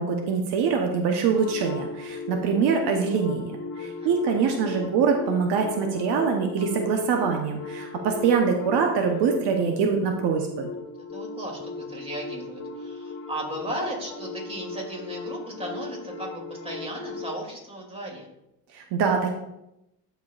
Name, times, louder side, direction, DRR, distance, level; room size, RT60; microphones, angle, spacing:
voice 1, 0.0-3.5 3.8-10.7 18.7-19.3, right 5 dB, 70° right, 3 dB, 1.0 m, -24 dB
sound 1, 1.4-17.4, left 3 dB, 35° left, 1.5 m, -37 dB
voice 2, 3.7-4.1 11.1-18.2, right 1 dB, 15° right, -2 dB, 2.5 m, -36 dB
12.5 x 4.6 x 2.4 m, 0.86 s
cardioid pair, 110°, 42 cm